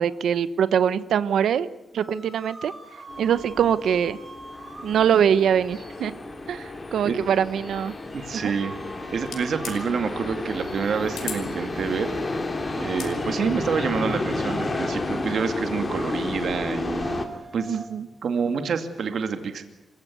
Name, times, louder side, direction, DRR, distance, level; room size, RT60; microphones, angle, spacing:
voice 1, 0.0-1.7 1.9-2.7 3.2-4.2 4.8-6.2 6.5-7.9 8.3-8.5 17.7-18.1, right 8 dB, 80° right, 15 dB, 1.0 m, -23 dB
sound 1, 2.0-17.9, right 2 dB, 20° right, 4.8 m, -46 dB
sound 2, 3.1-17.3, left 2 dB, 25° left, 2.7 m, -31 dB
voice 2, 8.1-8.8 9.1-12.1 12.7-17.2 17.5-17.8 18.2-19.6, right 6 dB, 55° right, 8 dB, 2.5 m, -27 dB
sound 3, 9.2-9.8 11.1-11.4 12.8-13.1, left 7 dB, 80° left, 5.0 m, -35 dB
28.5 x 16.0 x 9.7 m, 0.99 s
wide cardioid pair, 180°, 0 cm